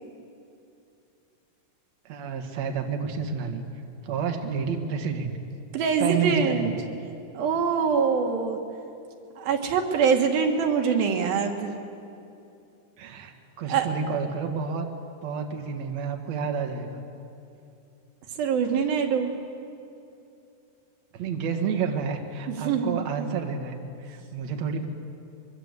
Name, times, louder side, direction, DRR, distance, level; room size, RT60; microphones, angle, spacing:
voice 1, 2.1-3.6 4.0-5.3 6.0-6.7 13.0-14.9 15.2-17.0 21.1-24.9, right 6 dB, 55° right, 3 dB, 2.7 m, -30 dB
voice 2, 5.7-6.7 7.3-8.6 9.4-11.7 13.7-13.9 18.3-19.3 22.5-23.3, right 6 dB, 85° right, 4 dB, 3.4 m, -24 dB
23.5 x 23.0 x 8.2 m, 2.6 s
omnidirectional pair, 4.1 m